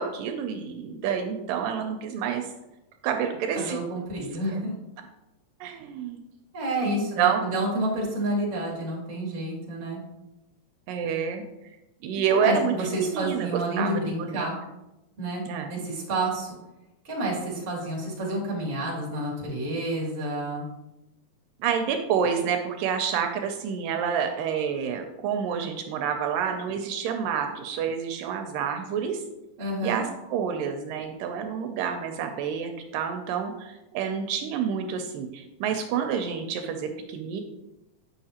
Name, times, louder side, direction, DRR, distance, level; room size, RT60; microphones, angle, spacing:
voice 1, 0.0-2.5 3.0-3.8 5.6-6.2 6.8-7.4 10.9-11.4 12.0-14.5 15.5-15.9 21.6-29.2 29.8-37.4, right 7 dB, 80° right, 5 dB, 2.1 m, -28 dB
voice 2, 3.5-4.7 6.5-10.0 12.3-14.6 15.2-15.4 15.7-16.5 17.0-20.7 29.6-30.0, right 1 dB, 30° right, -3 dB, 1.6 m, -29 dB
8.7 x 5.6 x 2.9 m, 0.96 s
omnidirectional pair, 4.0 m